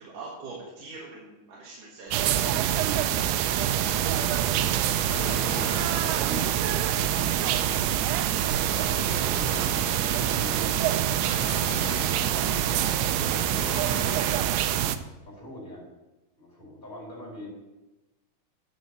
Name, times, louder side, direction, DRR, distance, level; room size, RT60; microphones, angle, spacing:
voice 1, 0.0-2.8 8.6-8.7, right 3 dB, 60° right, -5 dB, 3.0 m, -43 dB
Rain, 2.1-14.5, left 3 dB, 35° left, 1.8 m, -48 dB
sound 1, 2.1-15.0, right 11 dB, 90° right, 2.5 m, -25 dB
sound 2, 3.5-14.9, left 3 dB, 80° left, 3.2 m, -41 dB
voice 2, 3.6-7.8 8.4-8.6 9.4-14.2 15.2-15.9 16.4-17.5, left 1 dB, 10° left, -4 dB, 3.6 m, -44 dB
9.5 x 6.1 x 6.3 m, 1.1 s
omnidirectional pair, 4.4 m